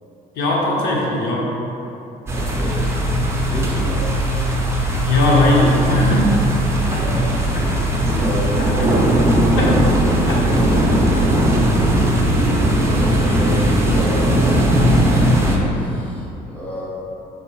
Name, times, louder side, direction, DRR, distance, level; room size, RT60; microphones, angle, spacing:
voice 1, 0.4-1.5 5.0-6.3 6.7-7.0 8.6-8.9 9.6-9.7 10.3-10.4 10.7-10.8 11.1-11.5, left 2 dB, 75° left, -3 dB, 0.7 m, -19 dB
voice 2, 2.3-2.9 3.5-4.1 7.0-7.4 8.2-9.2 9.7-11.0 12.9-14.5 15.0-16.9, equal, 10° left, -6 dB, 0.8 m, -30 dB
sound 1, 2.3-15.6, right 1 dB, 15° right, 0.5 m, -18 dB
4.3 x 3.8 x 2.3 m, 3.0 s
cardioid pair, 110°, 17 cm